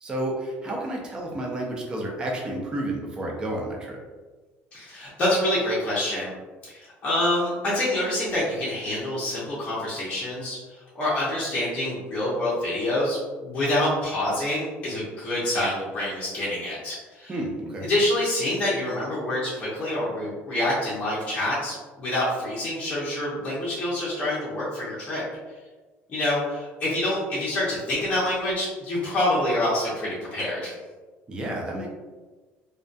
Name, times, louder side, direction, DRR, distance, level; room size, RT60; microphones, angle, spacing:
voice 1, 0.0-4.0 17.3-17.9 31.3-31.9, right 1 dB, 20° right, -1 dB, 0.4 m, -31 dB
voice 2, 4.7-6.3 6.7-10.6 10.9-17.3 17.8-25.2 26.1-30.7, left 1 dB, 25° left, -9 dB, 0.6 m, -26 dB
2.2 x 2.2 x 2.5 m, 1.3 s
cardioid pair, 170°, 5 cm